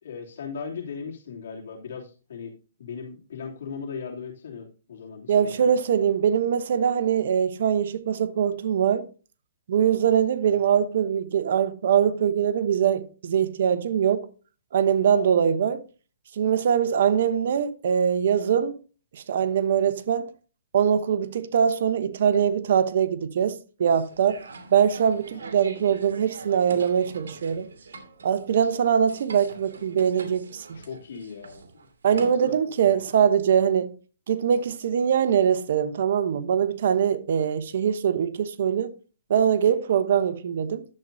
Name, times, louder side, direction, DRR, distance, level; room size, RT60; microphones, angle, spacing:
voice 1, 0.0-2.5 2.8-5.7 10.4-10.6 15.0-15.4 25.3-25.5 30.7-31.6 32.1-32.6 32.8-33.0, left 6 dB, 65° left, 2.8 m, -38 dB
voice 2, 5.3-9.1 9.7-14.3 14.7-15.8 16.3-18.8 19.1-20.3 20.7-24.4 24.7-27.7 28.2-30.8 32.0-33.9 34.3-38.9 39.3-40.8, right 8 dB, 60° right, 0.8 m, -22 dB
sound 1, 23.9-32.3, right 4 dB, 85° right, 2.0 m, -44 dB
11.0 x 7.6 x 2.7 m
hypercardioid pair, 155°, 0 cm